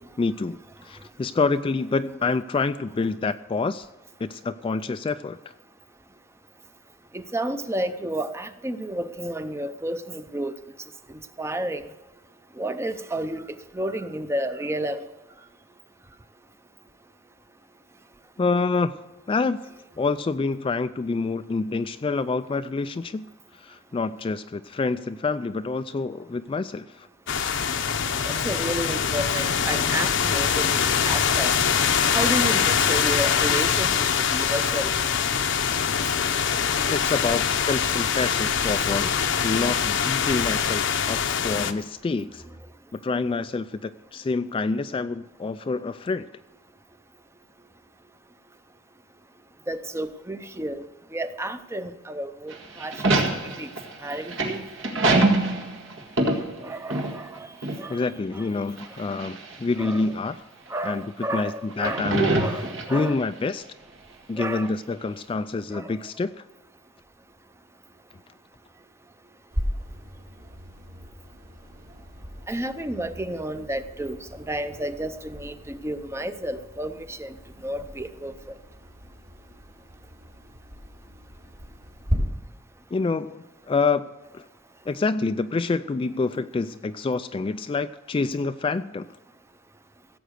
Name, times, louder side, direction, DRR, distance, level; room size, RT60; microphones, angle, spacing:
voice 1, 0.2-3.9 4.2-5.4 18.4-19.0 19.3-19.6 20.0-23.3 23.5-27.1 36.9-39.1 39.4-42.4 42.9-46.3 57.9-60.4 60.8-61.0 61.3-62.3 62.9-63.7 64.3-66.4 82.9-84.5 84.9-89.1, left 4 dB, 25° left, 11 dB, 0.3 m, -27 dB
voice 2, 7.1-10.5 11.4-11.9 12.6-15.1 28.2-30.8 31.0-31.5 32.1-34.9 37.7-37.8 49.7-50.9 51.1-53.2 53.6-53.7 54.0-54.7 56.6-57.5 57.8-58.5 59.8-60.1 60.7-62.1 62.4-63.2 64.4-64.8 65.7-65.9 72.5-77.3 77.6-78.5, right 1 dB, 15° right, 11 dB, 0.6 m, -31 dB
sound 1, 27.3-41.7, left 7 dB, 65° left, 0.8 m, -23 dB
sound 2, 52.5-57.4 57.6-57.8 58.8-59.6 60.3-60.4 61.7-63.2, right 2 dB, 70° right, 1.9 m, -24 dB
sound 3, 69.5-82.2, equal, 50° right, 2.9 m, -37 dB
16.0 x 7.8 x 6.5 m, 1.1 s
head